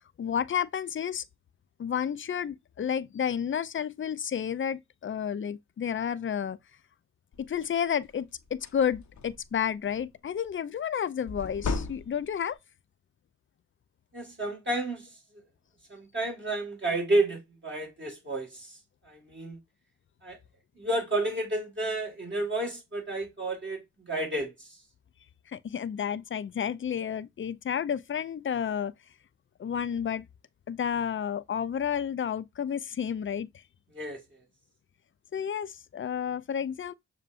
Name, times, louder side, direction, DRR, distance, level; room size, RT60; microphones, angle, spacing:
voice 1, 0.2-1.2 1.8-6.6 7.4-12.6 25.5-28.9 29.6-30.3 30.7-33.5 35.3-36.9, left 8 dB, 40° left, 0.4 m, -31 dB
sound 1, 7.3-7.6 8.1-8.2 8.5-9.6 11.3-12.5, left 4 dB, 60° left, 0.8 m, -35 dB
voice 2, 14.1-15.1 15.9-18.7 19.1-19.6 20.2-20.4 20.8-24.7 33.9-34.2, right 2 dB, 35° right, 1.8 m, -31 dB
6.8 x 2.3 x 2.5 m
cardioid pair, 55°, 32 cm